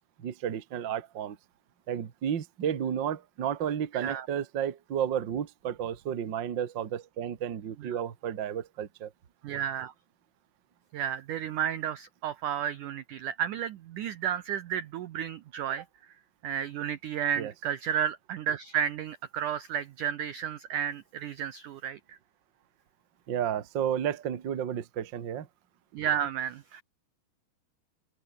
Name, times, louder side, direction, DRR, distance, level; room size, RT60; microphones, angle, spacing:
voice 1, 0.2-1.4 1.9-9.1 17.4-17.5 23.3-25.5, right 9 dB, 55° right, 1.2 m, -32 dB
voice 2, 3.9-4.3 7.8-8.0 9.4-9.9 10.9-16.1 16.4-22.2 25.9-26.8, right 9 dB, 80° right, 1.8 m, -32 dB
omnidirectional pair, 5.0 m